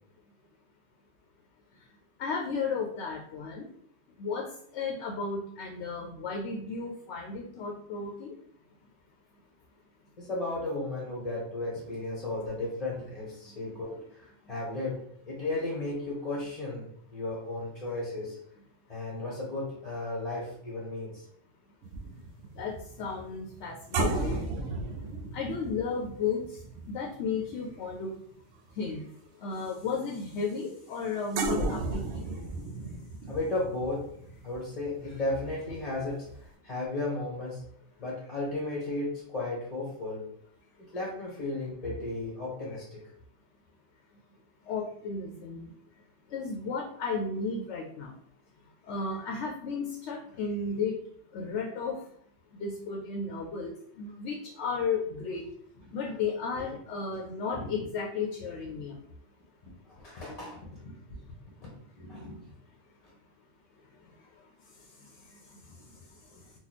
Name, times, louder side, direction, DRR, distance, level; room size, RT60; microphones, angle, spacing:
voice 1, 2.2-3.7 4.2-4.4 4.7-8.3 22.6-22.7 23.0-24.4 25.3-26.4 26.9-28.1 28.8-29.0 29.4-32.0 44.7-45.7 46.3-48.1 48.9-50.9 51.3-52.0 52.6-55.4 55.9-58.9, left 4 dB, 75° left, 0 dB, 0.9 m, -33 dB
voice 2, 10.2-16.8 17.1-18.4 18.9-21.2 33.3-34.0 34.4-37.6 38.0-40.3 40.8-43.0 55.9-56.2 56.5-56.6 57.5-57.7 58.7-58.8 59.9-61.2 61.6-61.7 62.0-62.4, left 2 dB, 35° left, -4 dB, 0.8 m, -35 dB
sound 1, 21.8-28.4 28.7-29.0 31.4-36.0 36.3-36.5, right 2 dB, 70° right, 0.8 m, -35 dB
2.9 x 2.3 x 4.0 m, 0.67 s
omnidirectional pair, 1.2 m